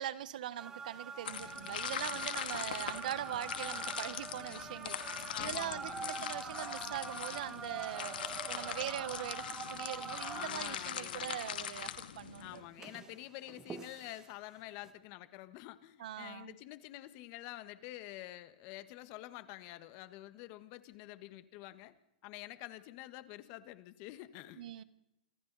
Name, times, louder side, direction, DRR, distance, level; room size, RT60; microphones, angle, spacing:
voice 1, 0.0-8.2 8.5-12.6 16.0-16.5 24.6-24.8, right 11 dB, 60° right, 16 dB, 1.2 m, -41 dB
sound 1, 0.6-11.8 12.6-14.3 14.8-14.9, right 5 dB, 10° right, 1.2 m, -45 dB
sound 2, 1.2-12.6, left 9 dB, 80° left, 2.3 m, -42 dB
voice 2, 5.3-6.2 10.3-11.4 12.4-21.9 22.2-24.7, left 16 dB, 35° left, 13 dB, 1.4 m, -48 dB
27.0 x 26.0 x 4.1 m, 0.86 s
supercardioid pair, 165°, 5 cm